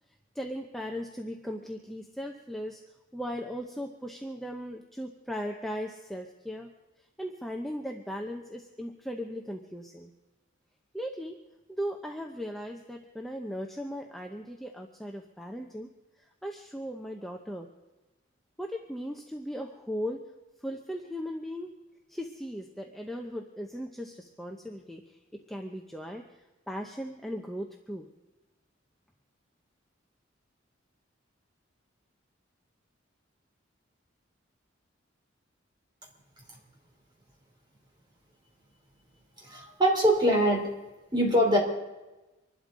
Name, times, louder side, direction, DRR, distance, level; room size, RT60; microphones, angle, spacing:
voice 1, 0.3-2.8 3.1-6.7 7.2-10.1 10.9-11.4 11.7-15.9 16.4-17.7 18.6-20.3 20.6-21.7 22.1-26.2 26.7-28.1, equal, ahead, 2 dB, 0.7 m, -37 dB
voice 2, 39.4-40.7 41.1-41.6, equal, 25° right, 0 dB, 3.2 m, -23 dB
25.5 x 12.0 x 3.8 m, 1.1 s
head